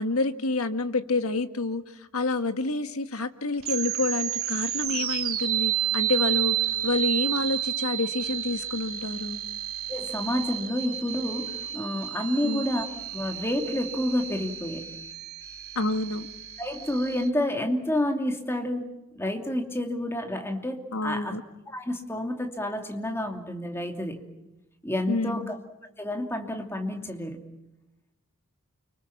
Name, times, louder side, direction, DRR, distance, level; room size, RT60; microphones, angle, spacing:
voice 1, 0.0-9.4 12.4-12.6 15.7-16.3 20.9-21.4 25.1-25.5, left 3 dB, 85° left, 9 dB, 1.7 m, -28 dB
sound 1, 3.6-17.3, right 13 dB, 80° right, 2.6 m, -31 dB
voice 2, 9.9-12.9 13.1-15.0 16.6-18.9 19.1-21.3 21.7-24.2 24.8-25.5 26.0-27.4, left 1 dB, 10° left, 3 dB, 2.8 m, -29 dB
30.0 x 25.0 x 7.3 m, 0.95 s
head